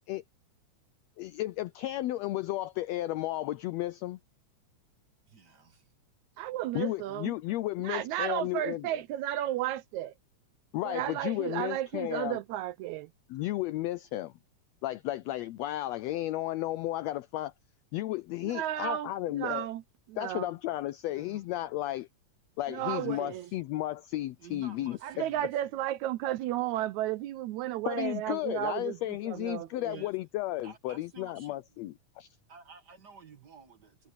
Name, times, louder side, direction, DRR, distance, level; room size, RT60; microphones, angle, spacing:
voice 1, 1.2-4.2 6.7-8.9 10.7-12.4 13.3-14.3 14.8-17.5 17.9-19.7 20.2-22.1 22.6-25.0 27.8-32.3, left 15 dB, 80° left, 1.5 m, -33 dB
voice 2, 5.3-5.9 22.8-23.6 24.4-25.7 29.9-30.1 30.6-31.6 32.5-34.1, right 5 dB, 45° right, 1.5 m, -52 dB
voice 3, 6.4-7.3 7.8-10.1 10.8-13.1 18.4-19.8 20.1-20.5 22.7-23.5 25.0-30.0, right 13 dB, 80° right, 1.9 m, -33 dB
omnidirectional pair, 3.5 m